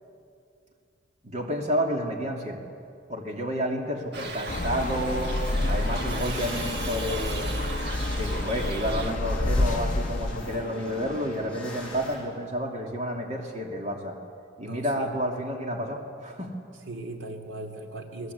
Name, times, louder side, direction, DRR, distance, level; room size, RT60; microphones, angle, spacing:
voice 1, 1.2-2.7 3.1-5.3 5.7-7.6 8.1-14.2 14.6-16.5, equal, 35° right, 1 dB, 2.7 m, -30 dB
Shout / Livestock farm animals working animals, 4.1-9.1, right 3 dB, 55° right, 1.7 m, -37 dB
sound 1, 4.5-10.7, left 2 dB, 40° left, 0.7 m, -29 dB
sound 2, 5.3-12.2, left 1 dB, 5° left, 7.9 m, -41 dB
voice 2, 14.6-15.1 16.9-18.3, right 2 dB, 75° right, 4 dB, 2.8 m, -38 dB
30.0 x 20.5 x 8.4 m, 2.4 s
head